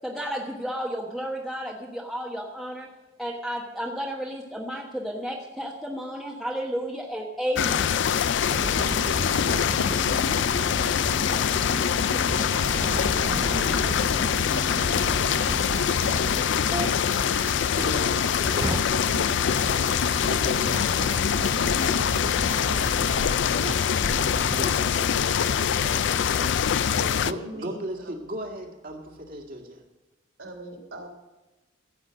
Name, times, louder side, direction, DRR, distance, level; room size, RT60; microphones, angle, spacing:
voice 1, 0.0-2.9 3.2-7.9, equal, ahead, -3 dB, 1.3 m, -32 dB
sound 1, 7.5-27.3, left 8 dB, 65° left, 0.4 m, -24 dB
sound 2, 8.5-24.7, right 2 dB, 15° right, 0.3 m, -35 dB
voice 2, 17.8-19.3 20.3-22.3 24.5-26.0 27.2-29.8, equal, 45° right, 2 dB, 2.2 m, -37 dB
voice 3, 25.8-26.6 26.8-28.1 30.4-31.1, right 2 dB, 75° right, 2 dB, 3.2 m, -41 dB
15.5 x 8.4 x 6.4 m, 1.1 s
head